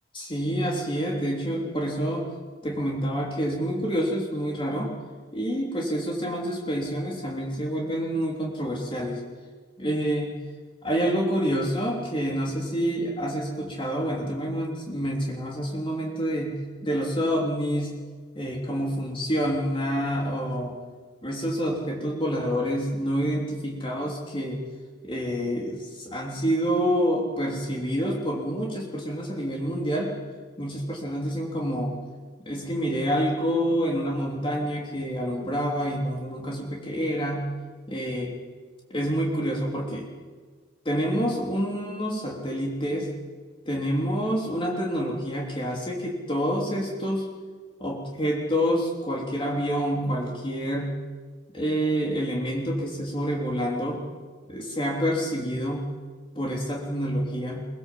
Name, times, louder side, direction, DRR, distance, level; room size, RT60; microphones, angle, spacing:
voice 1, 0.1-2.2 2.6-5.0 5.3-9.2 9.8-10.3 10.8-17.9 18.3-20.7 21.2-24.6 25.0-30.1 30.6-31.9 32.4-37.4 37.9-38.3 38.9-40.1 40.8-43.1 43.6-47.3 47.8-50.9 51.5-54.0 54.5-55.8 56.3-57.6, equal, 30° left, -2 dB, 3.4 m, -27 dB
23.5 x 23.0 x 7.7 m, 1.5 s
head